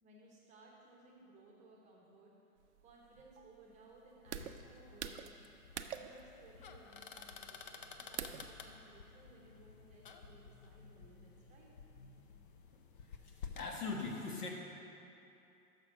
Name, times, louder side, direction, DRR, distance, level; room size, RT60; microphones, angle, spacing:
voice 1, 0.0-2.4 2.8-5.4 5.9-11.7, right 2 dB, 15° right, -2 dB, 0.8 m, -61 dB
sound 1, 2.6-8.6, right 9 dB, 50° right, 0.4 m, -47 dB
sound 2, 4.3-13.7, left 6 dB, 35° left, 0.4 m, -53 dB
voice 2, 13.2-14.5, left 4 dB, 75° left, 0 dB, 1.4 m, -41 dB
6.4 x 6.0 x 6.2 m, 2.7 s
hypercardioid pair, 125°, 46 cm